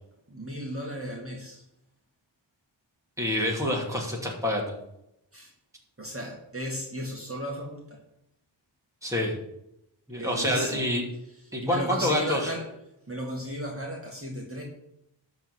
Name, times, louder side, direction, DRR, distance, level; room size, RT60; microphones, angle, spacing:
voice 1, 0.3-1.6 5.3-5.5 6.0-8.0 10.2-10.9 11.6-12.7 13.1-14.6, equal, 30° right, -2 dB, 2.2 m, -35 dB
voice 2, 3.2-4.7 9.0-9.3 10.1-11.0 11.5-12.4, left 1 dB, 5° right, -2 dB, 2.6 m, -27 dB
12.0 x 4.0 x 8.0 m, 0.82 s
wide cardioid pair, 65°, 45 cm